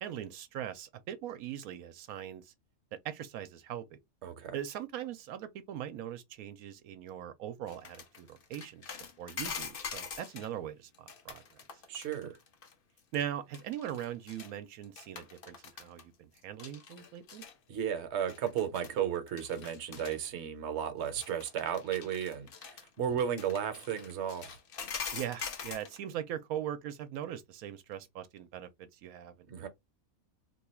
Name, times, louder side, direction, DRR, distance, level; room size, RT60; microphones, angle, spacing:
voice 1, 0.0-2.5 3.0-4.0 4.5-11.6 13.1-17.4 25.1-29.3, right 10 dB, 90° right, 1.0 m, -40 dB
voice 2, 4.2-4.6 11.9-12.4 17.7-24.5 29.5-29.7, right 8 dB, 60° right, 1.0 m, -34 dB
sound 1, 7.7-10.5 10.9-12.7 13.0-13.2 13.5-14.5 14.8-16.0 16.4-17.5 18.3-19.0 19.3-20.2 21.1-26.0, left 6 dB, 50° left, 0.7 m, -44 dB
2.9 x 2.3 x 4.2 m
omnidirectional pair, 1.5 m